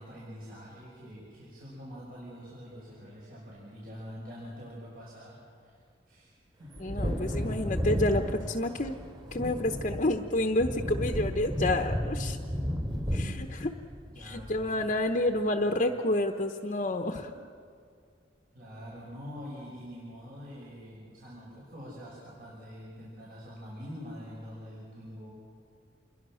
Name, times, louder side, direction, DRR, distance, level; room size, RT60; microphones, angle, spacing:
voice 1, 0.0-5.8 6.1-6.7 14.1-15.3 15.8-16.0 16.7-17.4 18.5-25.3, equal, 55° right, -6 dB, 6.4 m, -45 dB
Wind / Thunder, 6.7-15.0 15.3-15.4, equal, 25° right, 3.2 m, -33 dB
voice 2, 6.8-9.0 9.3-12.4 13.1-13.7 14.2-17.3, left 1 dB, 40° left, 5 dB, 1.0 m, -29 dB
28.0 x 22.5 x 6.4 m, 2.3 s
head